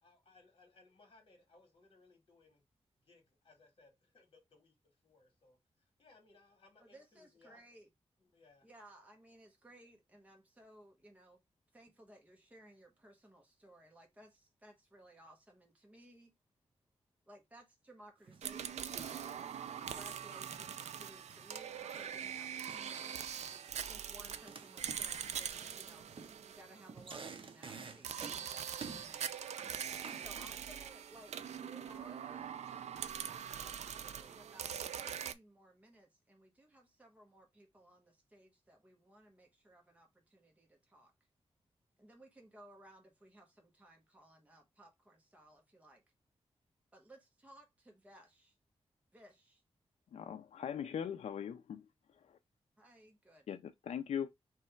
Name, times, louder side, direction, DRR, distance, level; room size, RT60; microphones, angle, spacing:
voice 1, 0.0-2.6 3.0-7.7 8.2-8.7, left 3 dB, 50° left, 2.0 m, -66 dB
voice 2, 6.8-7.9 8.6-11.4 11.7-16.3 17.3-23.2 23.9-26.1 26.5-29.3 30.1-41.1 42.0-46.0 46.9-48.5 49.1-49.6 52.8-53.5, right 1 dB, 15° right, 1.1 m, -60 dB
sound 1, 18.2-18.5 18.8-20.2 20.5-21.5 21.7-22.3 22.7-24.0 24.3-28.5 28.8-29.2 29.6-30.7 31.1-31.4, right 5 dB, 50° right, 0.7 m, -52 dB
sound 2, 18.4-27.3 28.0-35.3, right 8 dB, 90° right, 0.4 m, -43 dB
voice 3, 50.1-51.9 52.2-52.4 53.5-54.3, left 8 dB, 75° left, 0.4 m, -40 dB
3.3 x 3.1 x 4.4 m
wide cardioid pair, 135°, 11 cm